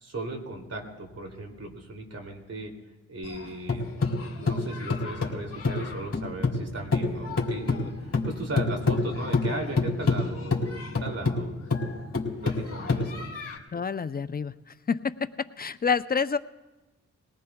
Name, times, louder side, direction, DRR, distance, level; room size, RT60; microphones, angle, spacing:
voice 1, 0.0-2.7 3.1-3.8 4.4-11.5 12.4-13.3, right 2 dB, 50° right, 2 dB, 2.8 m, -37 dB
sound 1, 3.2-6.6 6.9-13.6, left 3 dB, 50° left, 2.8 m, -27 dB
voice 2, 13.7-14.5 14.9-15.1 15.6-16.4, left 6 dB, 30° left, 13 dB, 0.6 m, -27 dB
21.0 x 18.0 x 2.3 m, 1.1 s
cardioid pair, 45°, 32 cm